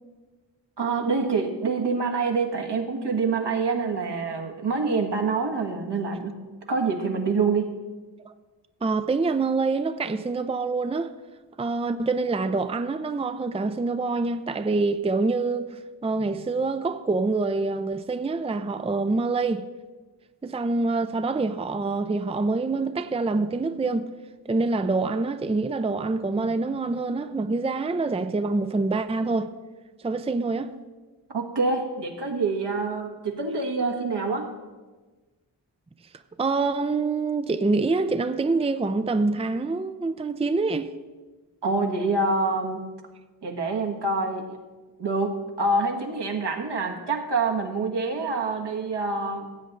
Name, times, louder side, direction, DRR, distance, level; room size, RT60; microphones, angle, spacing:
voice 1, 0.8-6.3 6.7-7.8 31.3-34.5 41.6-42.8 43.4-44.6 45.0-49.5, right 3 dB, 70° right, 1.6 m, -26 dB
voice 2, 8.8-11.1 11.6-19.7 20.4-24.1 24.5-29.5 30.0-30.7 36.4-40.9, right 3 dB, 15° right, 0.5 m, -26 dB
15.5 x 7.9 x 3.9 m
cardioid pair, 45°, 43 cm